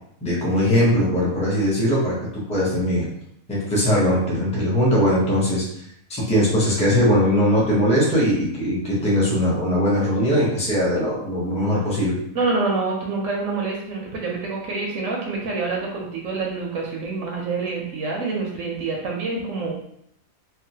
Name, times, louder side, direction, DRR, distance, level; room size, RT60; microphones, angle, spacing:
voice 1, 0.2-3.1 3.5-5.6 6.1-12.2, equal, 5° left, -6 dB, 0.6 m, -20 dB
voice 2, 12.3-19.8, right 3 dB, 70° right, -1 dB, 0.9 m, -27 dB
3.0 x 2.3 x 2.6 m, 0.72 s
omnidirectional pair, 1.5 m